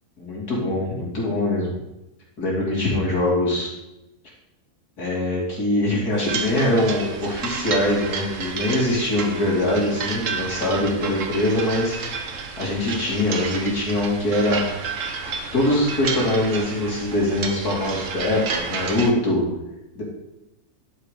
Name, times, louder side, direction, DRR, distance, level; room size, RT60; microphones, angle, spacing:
voice 1, 0.2-1.8 2.4-3.7 5.0-14.6 15.5-19.5 19.9-20.0, left 1 dB, 90° left, -4 dB, 3.4 m, -23 dB
sound 1, 6.2-19.1, right 5 dB, 60° right, 1.3 m, -31 dB
11.5 x 5.0 x 5.0 m, 0.94 s
omnidirectional pair, 1.6 m